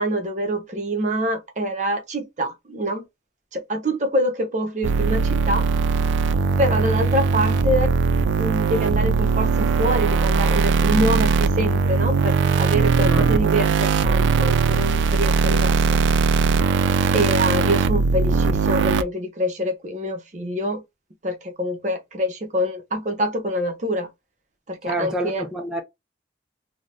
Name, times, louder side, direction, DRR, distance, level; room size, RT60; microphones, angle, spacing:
voice 1, 0.0-3.0 3.5-5.7 6.6-8.0 8.4-16.0 17.1-20.8 21.2-24.1 24.7-25.5, equal, 40° right, 0.7 m, -25 dB
sound 1, 4.8-19.0, right 4 dB, 90° right, 0.3 m, -20 dB
voice 2, 13.0-13.4 24.9-25.8, right 1 dB, 5° right, 0.3 m, -27 dB
2.6 x 2.0 x 3.4 m
head